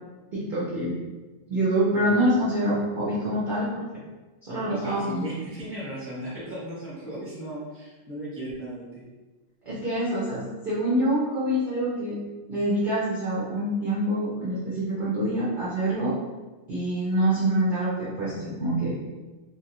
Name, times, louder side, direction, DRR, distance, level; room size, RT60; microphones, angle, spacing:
voice 1, 0.3-1.0 1.5-3.7 4.4-5.3 9.7-12.2 12.5-16.2 16.7-18.9, right 1 dB, 50° right, -8 dB, 0.6 m, -26 dB
voice 2, 4.7-9.0, right 1 dB, 10° right, -8 dB, 0.8 m, -36 dB
2.6 x 2.5 x 2.9 m, 1.2 s
omnidirectional pair, 1.6 m